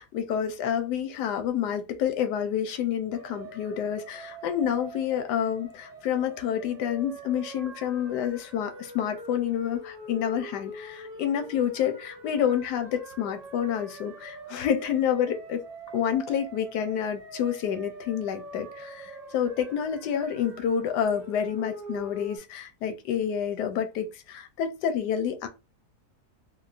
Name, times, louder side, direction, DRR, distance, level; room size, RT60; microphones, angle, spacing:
voice 1, 0.0-15.6 15.9-25.5, left 9 dB, 85° left, 1.1 m, -28 dB
sound 1, 3.1-22.4, right 1 dB, 30° right, 0.8 m, -44 dB
3.6 x 2.1 x 2.4 m
omnidirectional pair, 1.7 m